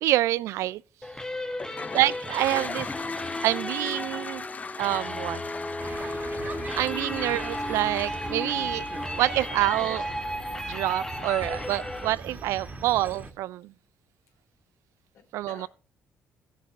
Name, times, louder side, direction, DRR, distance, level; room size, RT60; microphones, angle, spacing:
voice 1, 0.0-0.8 1.9-2.9 3.4-4.5 4.8-5.4 6.8-8.9 9.1-10.1 10.7-13.7 15.3-15.7, right 15 dB, 80° right, 0.4 m, -27 dB
sound 1, 1.0-12.1, left 1 dB, 15° left, 1.1 m, -34 dB
Toilet flush, 1.5-10.4, left 5 dB, 30° left, 0.5 m, -40 dB
voice 2, 1.7-2.0 14.3-14.4 15.1-15.7, left 6 dB, 75° left, 3.5 m, -52 dB
sound 2, 5.8-13.3, right 3 dB, 35° right, 1.9 m, -40 dB
14.5 x 7.4 x 3.4 m
supercardioid pair, 70°, 5 cm